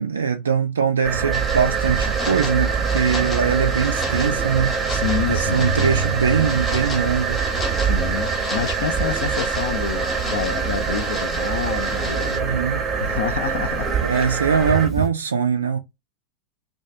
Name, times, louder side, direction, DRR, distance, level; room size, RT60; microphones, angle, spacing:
voice 1, 0.0-5.0 5.3-7.4 12.3-12.8 14.0-15.8, right 6 dB, 70° right, 0.3 m, -22 dB
sound 1, 1.0-15.1, right 6 dB, 25° right, 0.6 m, -24 dB
sound 2, 1.3-12.4, left 2 dB, 15° left, 0.7 m, -34 dB
voice 2, 4.9-5.7 7.8-12.3 13.0-13.9, left 8 dB, 60° left, 0.4 m, -28 dB
2.3 x 2.2 x 2.6 m
figure-of-eight pair, 90°, 0 cm